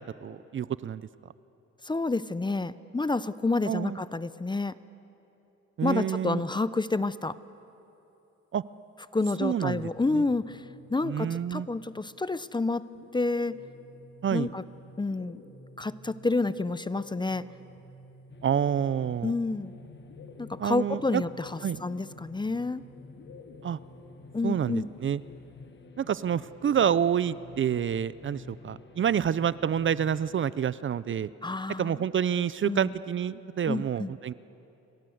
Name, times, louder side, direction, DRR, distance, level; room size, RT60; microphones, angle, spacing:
voice 1, 0.2-1.0 3.7-4.0 5.8-6.4 8.5-8.6 9.4-10.2 11.0-11.7 14.2-14.5 18.4-19.3 20.6-21.2 21.6-21.8 23.6-23.8 24.4-25.2 26.0-31.3 31.8-34.3, right 8 dB, 40° right, 17 dB, 0.6 m, -28 dB
voice 2, 1.8-4.7 5.8-7.4 9.1-10.6 10.9-12.9 13.1-13.5 14.3-14.6 15.0-15.4 15.8-17.5 19.2-19.7 20.4-22.8 24.3-24.9 31.4-32.0 32.6-32.9 33.7-34.1, left 3 dB, 15° left, 15 dB, 0.7 m, -29 dB
sound 1, 9.9-12.0 12.9-25.9, equal, 70° left, 4.6 m, -51 dB
sound 2, 18.3-30.5, left 6 dB, 35° left, 1.3 m, -51 dB
29.5 x 23.5 x 7.9 m, 3.0 s
cardioid pair, 90°, 30 cm